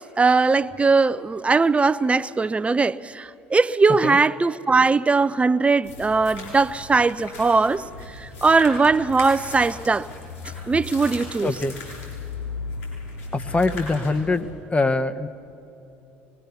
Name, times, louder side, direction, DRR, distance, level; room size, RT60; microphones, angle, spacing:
voice 1, 0.2-10.1 10.7-11.5, right 4 dB, 20° right, 0.6 m, -20 dB
sound 1, 5.8-14.4, left 3 dB, 85° left, 7.6 m, -36 dB
voice 2, 11.4-11.8 13.3-14.4 14.7-15.3, left 3 dB, 20° left, 1.0 m, -23 dB
24.0 x 21.0 x 6.9 m
hypercardioid pair, 65°, 6 cm